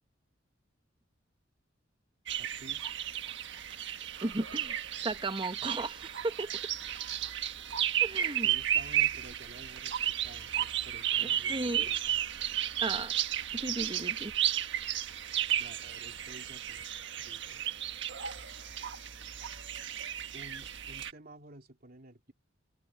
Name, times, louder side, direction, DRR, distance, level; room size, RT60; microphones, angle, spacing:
sound 1, 2.3-21.1, right 11 dB, 65° right, 1.5 m, -33 dB
voice 1, 2.4-2.9 8.4-12.2 15.6-16.9 17.2-17.6 20.3-22.3, right 1 dB, 50° right, 2.9 m, -52 dB
voice 2, 4.2-6.5 8.0-8.5 11.2-11.9 12.8-13.1 13.5-14.3, right 2 dB, 25° right, 1.1 m, -35 dB
open air
head